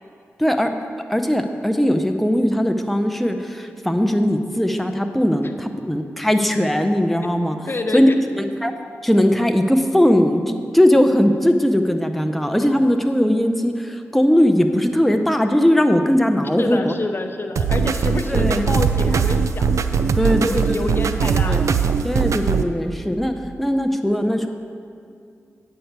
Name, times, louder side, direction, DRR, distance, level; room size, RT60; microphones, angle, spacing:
voice 1, 0.4-0.7 1.1-7.6 7.9-8.1 8.4-8.7 9.0-16.9 18.2-18.6 20.2-21.7 22.0-24.5, equal, ahead, 5 dB, 0.6 m, -19 dB
voice 2, 7.7-8.2 16.4-21.9, left 3 dB, 45° left, 6 dB, 0.6 m, -28 dB
sound 1, 17.6-22.6, right 6 dB, 75° right, 0.4 m, -20 dB
9.2 x 4.6 x 6.6 m, 2.4 s
cardioid pair, 50°, 5 cm